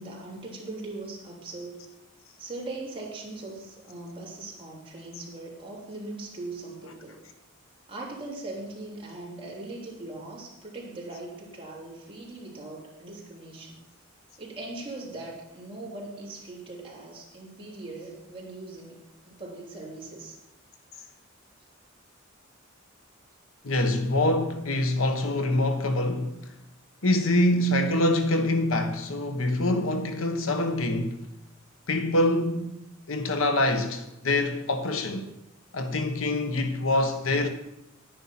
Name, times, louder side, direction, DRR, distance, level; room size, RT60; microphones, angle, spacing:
voice 1, 0.0-1.8 2.4-7.2 7.9-13.8 14.4-20.4 35.2-35.3, right 2 dB, 25° right, 3.4 m, -40 dB
voice 2, 23.6-26.5 27.0-31.3 31.9-32.8 33.1-35.3 35.7-37.5, left 1 dB, 75° left, 1.1 m, -25 dB
10.0 x 10.0 x 5.8 m
head